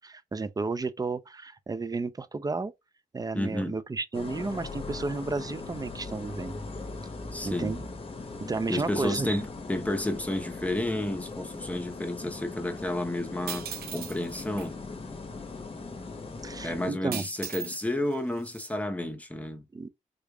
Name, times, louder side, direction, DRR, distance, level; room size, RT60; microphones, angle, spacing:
voice 1, 0.0-2.7 3.1-6.5 7.4-7.9 8.4-9.4 16.4-17.2 19.7-19.9, right 3 dB, 25° right, 0.5 m, -32 dB
voice 2, 3.3-3.7 7.3-7.8 8.7-14.7 16.6-19.6, left 1 dB, 10° left, 0.9 m, -31 dB
sound 1, 4.1-16.9, left 3 dB, 35° left, 0.9 m, -40 dB
sound 2, 13.5-14.7 17.1-17.8 18.1-18.7, right 9 dB, 90° right, 0.6 m, -38 dB
3.7 x 3.2 x 2.3 m
cardioid pair, 80°, 16 cm